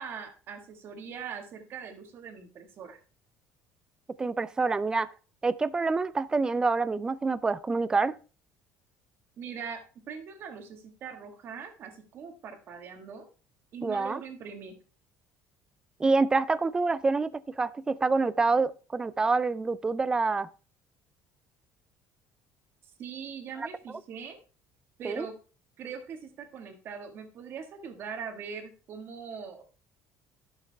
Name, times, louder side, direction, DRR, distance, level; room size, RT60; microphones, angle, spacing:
voice 1, 0.0-3.0 9.4-13.3 13.7-14.8 23.0-24.4 25.0-25.3 25.8-29.6, right 6 dB, 40° right, 1.6 m, -41 dB
voice 2, 4.2-5.1 5.4-8.1 13.8-14.2 16.0-20.5 23.6-23.7 25.0-25.3, right 3 dB, 15° right, 0.3 m, -27 dB
11.5 x 6.5 x 3.4 m
cardioid pair, 170°, 6 cm